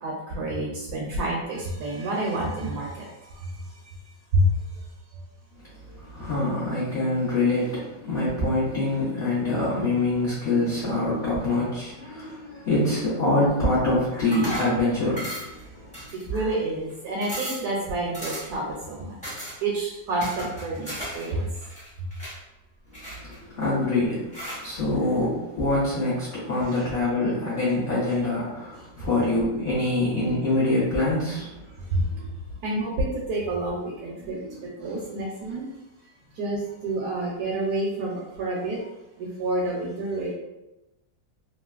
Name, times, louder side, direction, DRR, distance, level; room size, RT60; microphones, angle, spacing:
voice 1, 0.0-3.1 3.4-3.5 4.3-4.5 16.1-19.2 19.6-21.5 31.9-32.1 32.6-34.4 34.8-35.6 36.4-38.9 39.2-40.3, right 1 dB, 70° right, -3 dB, 1.0 m, -28 dB
voice 2, 5.9-15.9 16.3-16.5 23.1-31.6 32.1-32.3 34.2-35.1, left 2 dB, 45° left, -10 dB, 0.8 m, -25 dB
sound 1, 14.3-14.8 15.2-15.6 15.9-16.5 16.9-17.0 17.2-17.7 18.1-18.6 19.2-19.6 20.2-21.3 21.5-22.4 22.9-23.6 24.3-24.7, equal, 5° left, 0.7 m, -35 dB
3.1 x 2.5 x 2.3 m, 0.96 s
omnidirectional pair, 1.9 m